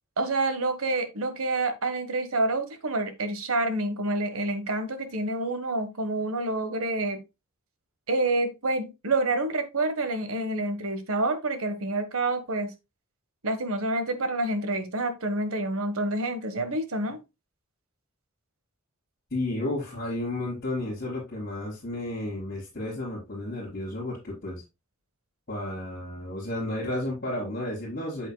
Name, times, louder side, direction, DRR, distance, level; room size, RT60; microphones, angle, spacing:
voice 1, 0.2-7.2 8.1-12.7 13.4-17.2, right 2 dB, 75° right, 9 dB, 1.4 m, -28 dB
voice 2, 19.3-24.6 25.5-28.3, left 1 dB, 45° left, -7 dB, 4.2 m, -32 dB
8.1 x 7.6 x 2.2 m, 0.25 s
head